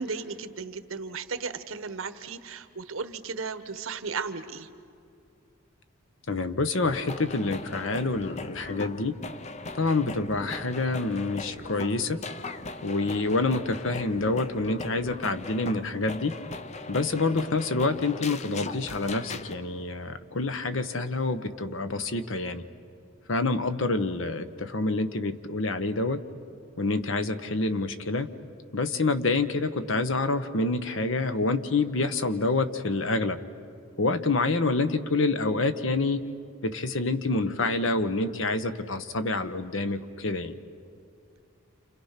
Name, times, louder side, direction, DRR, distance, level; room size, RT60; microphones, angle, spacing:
voice 1, 0.0-4.7, right 4 dB, 70° right, 11 dB, 1.1 m, -35 dB
voice 2, 6.3-9.1 9.8-12.2 12.8-16.3 16.9-22.6 23.3-26.2 26.8-28.3 28.7-33.4 34.0-36.2 36.6-40.6, left 3 dB, 65° left, 10 dB, 1.1 m, -27 dB
sound 1, 6.8-19.5, left 3 dB, 30° left, 0.6 m, -39 dB
29.0 x 28.5 x 5.8 m, 2.5 s
head